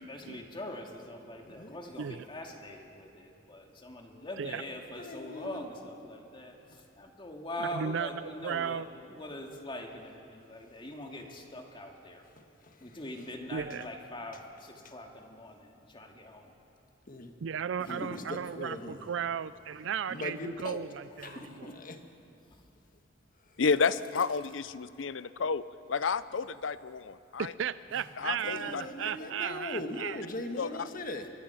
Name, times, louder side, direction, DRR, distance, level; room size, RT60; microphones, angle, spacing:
voice 1, 0.1-12.3 12.8-16.5 17.8-18.3 21.2-21.8 22.5-22.7 27.9-28.7, left 1 dB, 25° left, 2 dB, 2.2 m, -43 dB
voice 2, 1.4-1.8 4.1-4.3 5.0-5.7 12.4-13.0 17.1-17.3 17.9-19.1 20.1-20.8 21.2-22.0 23.4-23.6 28.4-31.3, left 2 dB, 45° left, 6 dB, 1.5 m, -40 dB
voice 3, 7.6-8.9 13.5-13.9 17.4-21.7 27.4-30.2, right 7 dB, 70° right, 15 dB, 0.4 m, -35 dB
voice 4, 23.6-25.6 25.9-27.5 28.2-28.8 29.2-29.3 30.6-30.9, left 5 dB, 70° left, 16 dB, 0.6 m, -31 dB
24.0 x 22.5 x 5.8 m, 2.7 s
head